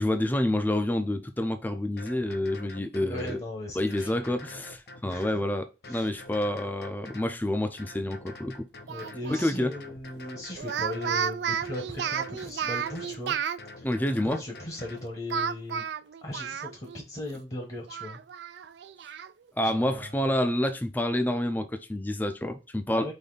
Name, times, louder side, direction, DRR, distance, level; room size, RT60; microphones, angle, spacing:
voice 1, 0.0-3.4 3.8-8.7 9.3-9.7 13.8-14.4 19.6-23.1, left 1 dB, 10° left, 0.4 m, -28 dB
sound 1, 1.4-1.6 2.0-3.5 3.9-5.4 5.8-7.4 7.8-9.3 9.7-11.2 11.6-13.2 13.6-15.1, left 2 dB, 65° left, 0.7 m, -46 dB
voice 2, 3.0-4.4 5.0-5.4 5.9-6.1 8.9-13.4 13.8-13.9 14.2-15.8 16.2-18.2 19.6-20.4 22.9-23.1, left 1 dB, 35° left, 1.0 m, -38 dB
Speech, 8.9-9.5 10.6-13.6 15.3-17.0 17.4-17.5 17.9-19.3, right 7 dB, 80° right, 0.4 m, -32 dB
5.1 x 2.7 x 3.9 m
head